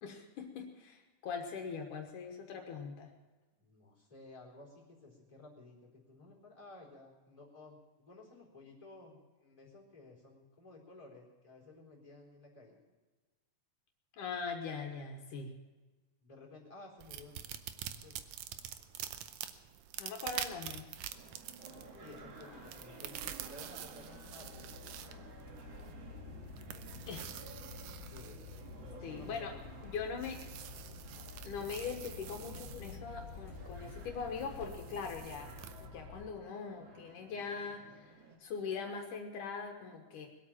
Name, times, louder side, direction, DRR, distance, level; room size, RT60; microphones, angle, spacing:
voice 1, 0.0-3.1 14.2-15.5 20.0-20.9 27.1-27.3 29.0-29.5 29.8-30.4 31.4-38.1 38.4-40.3, left 5 dB, 75° left, 2 dB, 2.7 m, -41 dB
voice 2, 3.6-12.8 16.2-17.3 17.9-18.2 22.0-25.5 28.0-28.4 28.8-29.7, left 2 dB, 10° left, -2 dB, 3.8 m, -55 dB
sound 1, 17.0-35.9, right 11 dB, 70° right, 1.8 m, -47 dB
sound 2, 21.1-38.4, right 4 dB, 50° right, 1.8 m, -55 dB
sound 3, 21.6-36.3, left 5 dB, 60° left, 2.6 m, -50 dB
21.5 x 8.7 x 7.4 m, 1.3 s
omnidirectional pair, 3.8 m